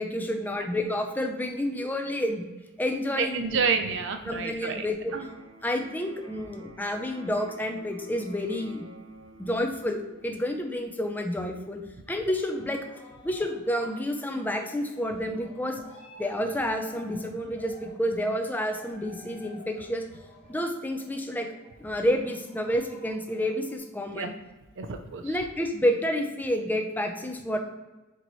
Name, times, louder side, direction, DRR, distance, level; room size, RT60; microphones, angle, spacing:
voice 1, 0.0-2.4 2.8-3.6 4.2-5.1 5.6-8.9 9.4-10.0 10.2-11.8 12.1-12.8 13.2-15.8 16.2-20.0 20.5-21.5 21.8-24.3 25.2-27.6, left 1 dB, 10° left, 3 dB, 0.5 m, -29 dB
voice 2, 3.2-4.9 5.1-5.3 24.1-24.3 24.8-25.4, right 5 dB, 60° right, 7 dB, 0.5 m, -29 dB
Electric guitar, 5.0-13.0, equal, 85° right, 1.0 m, -51 dB
sound 1, 12.3-23.8, left 2 dB, 30° left, 1.3 m, -52 dB
4.5 x 3.0 x 4.0 m, 1.1 s
head